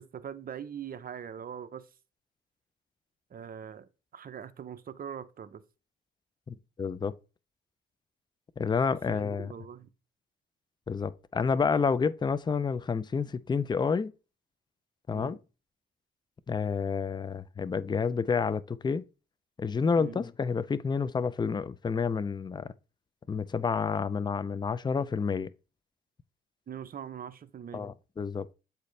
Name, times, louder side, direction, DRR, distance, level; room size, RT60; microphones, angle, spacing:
voice 1, 0.0-1.9 3.3-5.6 9.1-9.9 15.1-15.4 20.0-20.2 26.7-27.9, right 8 dB, 45° right, 0.7 m, -42 dB
voice 2, 6.5-7.2 8.6-9.5 10.9-14.1 15.1-15.4 16.5-19.1 19.6-22.7 23.3-25.5 27.7-28.5, left 5 dB, 20° left, 0.5 m, -29 dB
8.1 x 4.2 x 3.3 m
cardioid pair, 85°, 21 cm